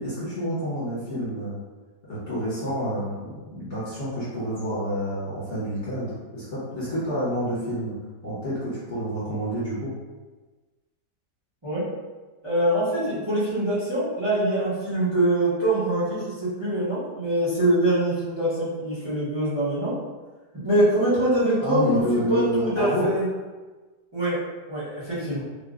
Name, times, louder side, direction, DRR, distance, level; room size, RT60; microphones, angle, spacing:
voice 1, 0.0-1.6 2.1-7.9 8.2-9.9 21.6-23.1, equal, 45° left, -10 dB, 1.7 m, -28 dB
voice 2, 12.4-19.9 20.6-23.3 24.1-24.4 24.7-25.4, right 1 dB, 15° right, -12 dB, 1.2 m, -24 dB
3.8 x 2.6 x 2.5 m, 1.3 s
omnidirectional pair, 1.8 m